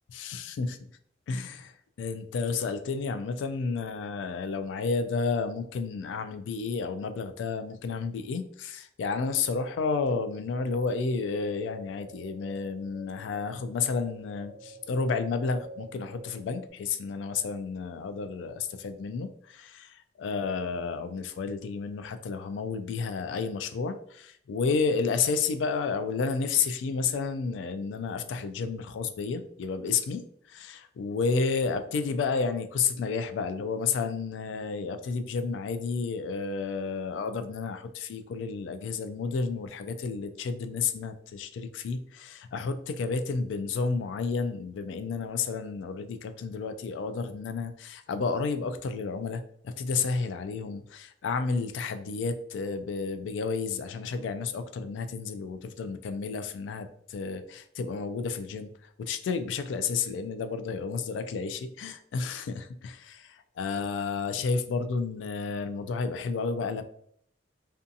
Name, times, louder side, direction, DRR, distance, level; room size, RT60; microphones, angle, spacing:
voice 1, 0.1-0.8 1.3-1.6 2.0-58.7 59.0-66.8, left 4 dB, 90° left, 10 dB, 0.3 m, -31 dB
sound 1, 10.5-16.7, left 1 dB, 30° right, 0.8 m, -49 dB
2.5 x 2.3 x 2.6 m, 0.66 s
head